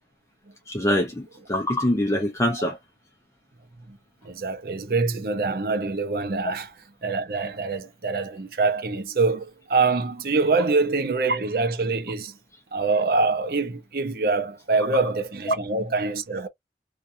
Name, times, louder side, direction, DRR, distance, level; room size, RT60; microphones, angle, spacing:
voice 1, 0.7-2.8 15.5-15.6, left 1 dB, 15° left, 0.5 m, -24 dB
voice 2, 4.2-6.7 7.0-12.3 12.7-16.5, right 3 dB, 55° right, 0.6 m, -24 dB
2.6 x 2.3 x 2.5 m
head